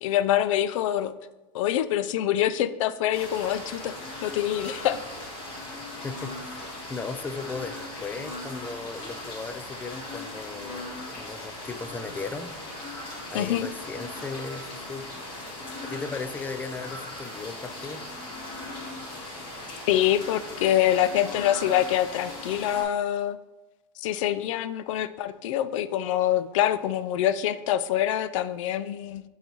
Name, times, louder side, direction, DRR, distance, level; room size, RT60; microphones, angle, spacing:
voice 1, 0.0-1.1 1.5-4.0 4.2-5.0 13.3-13.7 19.9-23.4 24.0-29.2, left 11 dB, 70° left, 14 dB, 0.5 m, -25 dB
sound 1, 3.1-22.8, left 1 dB, 30° left, 2.2 m, -39 dB
voice 2, 6.0-12.5 13.3-15.1 15.8-18.0, left 4 dB, 10° left, 9 dB, 0.4 m, -37 dB
11.0 x 4.0 x 3.1 m, 1.1 s
supercardioid pair, 130°, 17 cm